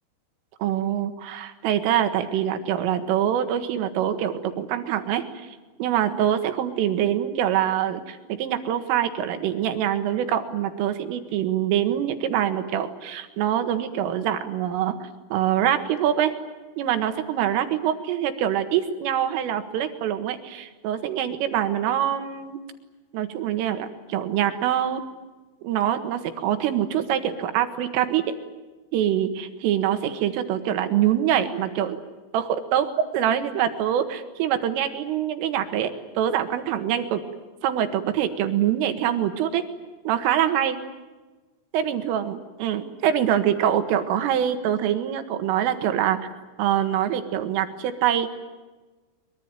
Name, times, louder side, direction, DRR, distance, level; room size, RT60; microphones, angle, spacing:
voice 1, 0.6-5.2 5.8-16.3 16.8-22.6 23.1-25.0 25.6-28.4 28.9-32.0 32.3-37.2 37.6-39.6 40.1-40.8 41.7-46.3 46.6-48.3, right 10 dB, 75° right, 8 dB, 4.1 m, -24 dB
23.5 x 23.5 x 9.2 m, 1.2 s
omnidirectional pair, 5.9 m